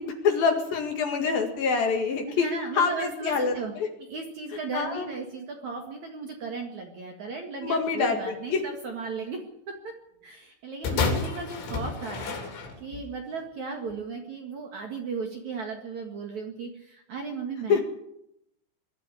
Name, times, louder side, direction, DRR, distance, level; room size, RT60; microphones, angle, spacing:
voice 1, 0.0-2.5 2.7-3.9 4.7-5.1 7.6-8.6 10.9-11.1 17.7-17.8, left 5 dB, 55° left, 4 dB, 3.3 m, -26 dB
voice 2, 2.3-3.7 4.0-9.4 9.8-9.9 10.2-12.3 12.8-17.8, right 4 dB, 50° right, 3 dB, 2.5 m, -35 dB
sound 1, 10.8-13.1 13.9-14.0, left 4 dB, 85° left, 5.8 m, -30 dB
21.0 x 12.5 x 9.9 m, 0.79 s
omnidirectional pair, 5.4 m